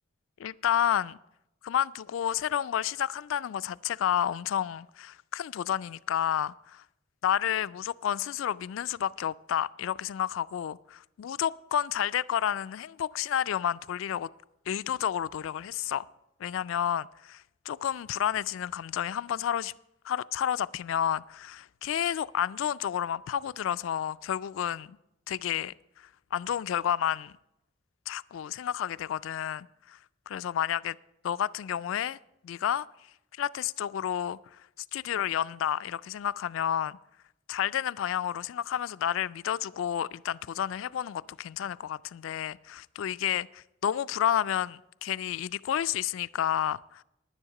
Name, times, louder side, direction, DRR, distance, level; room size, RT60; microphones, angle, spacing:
voice 1, 0.4-1.2 1.6-6.8 7.2-14.3 14.7-16.1 16.4-19.7 20.0-25.0 25.3-27.3 28.1-30.0 30.3-31.0 31.2-32.2 32.4-32.9 33.4-34.6 34.9-37.0 37.5-47.0, left 9 dB, 85° left, 0.3 m, -30 dB
10.5 x 9.9 x 5.8 m
head